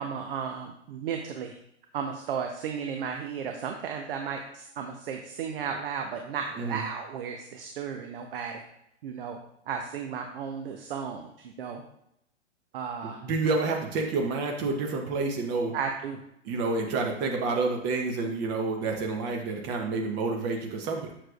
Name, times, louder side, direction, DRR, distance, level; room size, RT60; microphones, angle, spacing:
voice 1, 0.0-1.5 1.9-8.6 9.0-9.4 9.7-11.8 12.7-13.2 15.7-16.2, right 7 dB, 50° right, 3 dB, 0.8 m, -34 dB
voice 2, 13.0-15.7 16.4-21.0, right 3 dB, 30° right, 2 dB, 1.0 m, -29 dB
7.4 x 6.6 x 2.4 m, 0.77 s
figure-of-eight pair, 110°, 36 cm